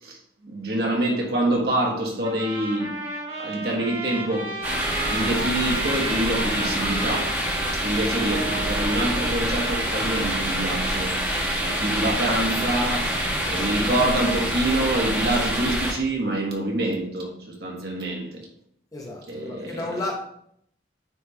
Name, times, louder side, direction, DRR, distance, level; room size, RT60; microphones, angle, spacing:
voice 1, 0.0-3.0 3.4-4.5 5.1-7.4 7.7-11.1 11.6-13.2 13.5-18.5 19.3-20.0, right 1 dB, 65° right, 1.6 m, -26 dB
sound 1, 2.2-10.6, right 3 dB, 35° right, 1.8 m, -34 dB
sound 2, 4.6-15.9, equal, 10° right, 1.5 m, -26 dB
voice 2, 18.9-20.1, left 2 dB, 20° left, 1.0 m, -32 dB
9.1 x 3.4 x 3.4 m
head